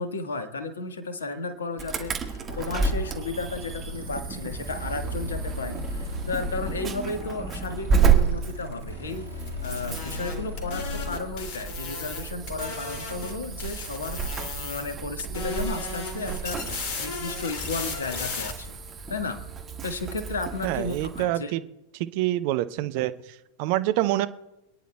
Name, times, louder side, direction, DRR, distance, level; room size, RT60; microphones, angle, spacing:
voice 1, 0.0-14.2 14.5-18.8 19.1-19.4 19.8-21.5, left 3 dB, 70° left, 8 dB, 1.5 m, -34 dB
Insect / Alarm, 1.8-21.2, right 6 dB, 25° right, 1.6 m, -31 dB
sound 1, 2.4-11.2, left 3 dB, 85° right, 4.5 m, -37 dB
sound 2, 9.5-13.3 13.6-14.9 15.2-18.5, left 4 dB, 45° left, 2.5 m, -35 dB
voice 2, 20.6-21.6 22.1-23.1 23.6-24.3, right 15 dB, 45° right, 13 dB, 0.7 m, -25 dB
27.0 x 10.0 x 2.3 m, 0.92 s
figure-of-eight pair, 90°, 0 cm